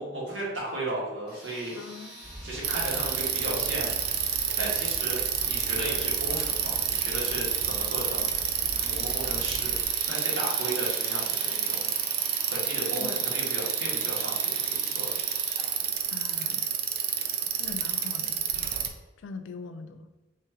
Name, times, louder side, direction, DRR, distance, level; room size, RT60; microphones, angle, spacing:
voice 1, 0.0-1.8 2.4-8.3 8.8-11.9 12.5-15.1, right 1 dB, 80° right, -5 dB, 1.4 m, -35 dB
sound 1, 1.3-16.0, right 1 dB, 25° right, 1.2 m, -44 dB
voice 2, 1.8-2.2 13.0-13.3 16.1-16.7 17.6-18.4 19.2-20.1, left 4 dB, 85° left, 7 dB, 0.3 m, -42 dB
sound 2, 2.2-9.8, equal, 10° right, 0.6 m, -42 dB
Bicycle, 2.6-18.9, right 8 dB, 55° right, 0.4 m, -29 dB
3.2 x 2.4 x 4.3 m, 1.2 s
head